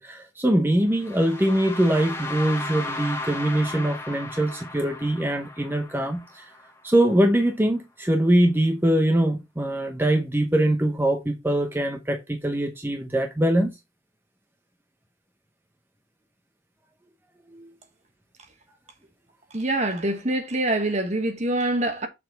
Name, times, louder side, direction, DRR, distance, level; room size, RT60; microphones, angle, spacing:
voice 1, 0.0-6.4 6.8-13.7 17.5-17.7, right 1 dB, 10° right, 0.8 m, -23 dB
sound 1, 0.9-6.9, left 2 dB, 15° left, 1.1 m, -36 dB
voice 2, 19.5-22.1, right 1 dB, 40° right, 1.3 m, -25 dB
6.8 x 4.2 x 3.9 m
head